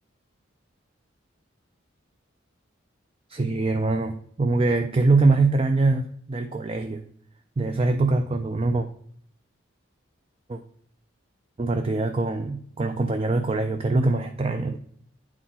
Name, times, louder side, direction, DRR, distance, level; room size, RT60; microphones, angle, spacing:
voice 1, 3.3-7.0 7.6-8.9 10.5-10.6 11.6-14.8, right 3 dB, 30° right, 7 dB, 0.4 m, -23 dB
9.1 x 4.1 x 4.2 m, 0.65 s
head